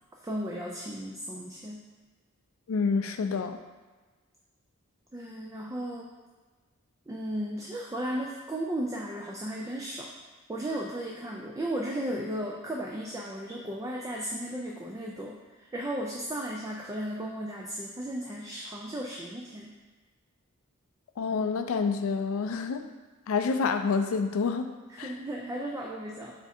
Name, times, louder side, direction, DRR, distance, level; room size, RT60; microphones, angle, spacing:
voice 1, 0.2-1.8 5.1-6.1 7.1-10.1 10.5-19.7 24.9-26.3, right 1 dB, 15° right, -2 dB, 0.3 m, -35 dB
voice 2, 2.7-3.6 21.2-22.8 23.3-24.7 25.0-25.1, left 5 dB, 75° left, 7 dB, 0.4 m, -28 dB
3.5 x 3.5 x 4.2 m, 1.3 s
head